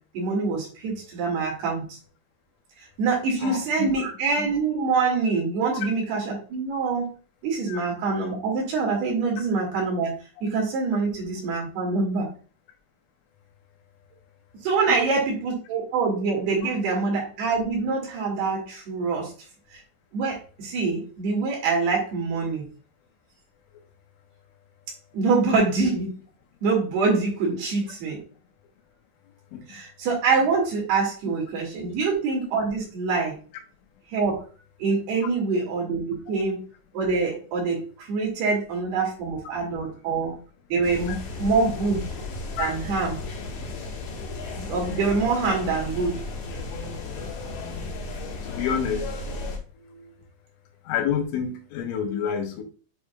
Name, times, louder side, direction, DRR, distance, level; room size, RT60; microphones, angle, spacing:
voice 1, 0.1-2.0 3.0-7.1 7.4-10.1 10.4-12.3 14.6-19.3 19.7-19.8 20.1-22.7 25.1-26.2 26.6-28.2 29.7-33.4 34.1-34.4 34.8-36.6 36.9-40.3 40.7-42.0 42.6-43.2 44.6-46.2, right 4 dB, 60° right, -1 dB, 3.8 m, -25 dB
voice 2, 3.4-4.0 7.7-7.8 14.9-15.0 27.5-27.6 29.5-29.8 42.6-42.7 47.7-47.9 48.5-49.1 49.8-50.1 50.9-52.6, left 8 dB, 85° left, 3 dB, 3.7 m, -29 dB
sound 1, 40.8-49.6, left 3 dB, 65° left, 3.1 m, -34 dB
8.7 x 5.0 x 2.3 m, 0.37 s
omnidirectional pair, 5.5 m